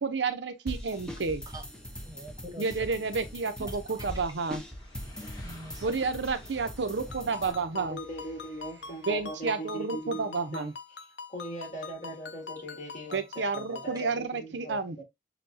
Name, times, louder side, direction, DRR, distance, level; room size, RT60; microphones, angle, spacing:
voice 1, 0.0-1.4 2.6-4.6 5.8-8.0 9.1-10.7 13.1-15.0, right 4 dB, 80° right, 0.7 m, -31 dB
sound 1, 0.7-7.5, equal, 5° left, 0.8 m, -41 dB
voice 2, 0.9-2.8 3.6-4.1 5.4-5.9 12.0-12.2, right 1 dB, 20° right, 1.0 m, -46 dB
sound 2, 4.6-9.5, left 1 dB, 20° left, 1.3 m, -52 dB
Ringtone, 7.1-14.0, left 5 dB, 70° left, 0.6 m, -45 dB
voice 3, 7.7-10.7 11.3-15.0, right 1 dB, 40° left, 1.7 m, -40 dB
6.7 x 2.3 x 2.6 m
head